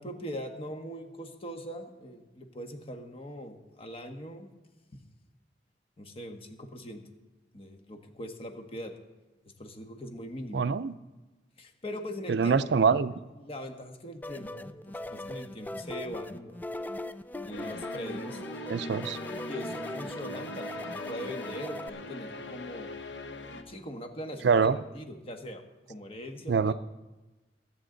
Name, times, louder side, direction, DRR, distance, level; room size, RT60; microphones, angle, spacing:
voice 1, 0.0-4.5 6.0-7.0 7.5-8.9 9.6-10.7 11.6-12.6 13.3-16.6 17.5-18.4 19.5-22.9 23.5-25.6 25.9-26.7, equal, 35° left, 5 dB, 1.4 m, -41 dB
voice 2, 10.5-10.9 12.3-13.2 18.7-19.2 24.4-24.8 26.5-26.7, right 5 dB, 70° right, 15 dB, 0.4 m, -24 dB
sound 1, 14.2-21.9, left 1 dB, 10° left, 0.3 m, -40 dB
sound 2, 17.5-23.6, left 1 dB, 85° left, 1.1 m, -40 dB
22.5 x 7.9 x 3.9 m, 1.1 s
head